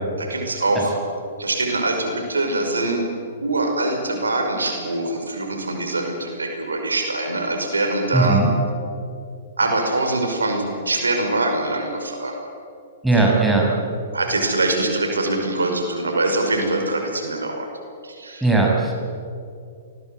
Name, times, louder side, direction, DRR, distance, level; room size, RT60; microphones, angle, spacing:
voice 1, 0.2-0.9 1.4-3.1 3.4-8.4 9.6-12.3 13.1-13.3 14.1-17.7 18.0-18.5, right 2 dB, 80° right, 4 dB, 5.5 m, -23 dB
voice 2, 8.1-8.5 13.0-13.7 18.4-18.9, right 3 dB, 5° right, -2 dB, 6.7 m, -17 dB
29.0 x 20.5 x 8.1 m, 2.4 s
figure-of-eight pair, 115°, 0 cm